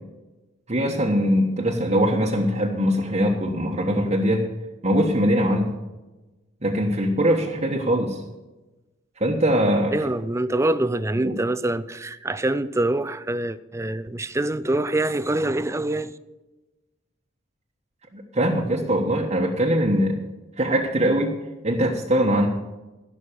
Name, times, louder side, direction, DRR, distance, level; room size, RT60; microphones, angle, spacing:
voice 1, 0.7-4.4 4.8-5.7 6.6-8.2 9.2-9.9 11.2-11.3 18.1-20.2 20.6-21.3 21.6-22.5, equal, 35° right, 1.2 m, -22 dB
voice 2, 9.9-16.2, right 2 dB, 15° right, 0.5 m, -25 dB
15.5 x 6.3 x 6.9 m
head